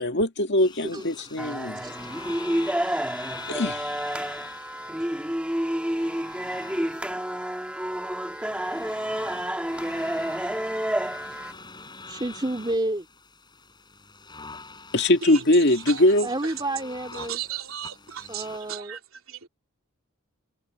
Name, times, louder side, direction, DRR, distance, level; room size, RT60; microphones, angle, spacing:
voice 1, 0.0-1.8 3.5-4.0 14.9-16.3, left 1 dB, 55° left, 2.0 m, -22 dB
sound 1, 0.6-18.7, left 4 dB, 20° left, 7.7 m, -45 dB
voice 2, 0.9-1.3 1.7-2.4 11.3-11.4 12.1-13.1 16.2-17.4 18.3-19.0, right 1 dB, 20° right, 3.2 m, -31 dB
sound 2, 1.4-11.5, right 1 dB, 5° right, 2.3 m, -29 dB
voice 3, 17.1-19.0 19.3-19.5, right 10 dB, 75° right, 3.1 m, -35 dB
head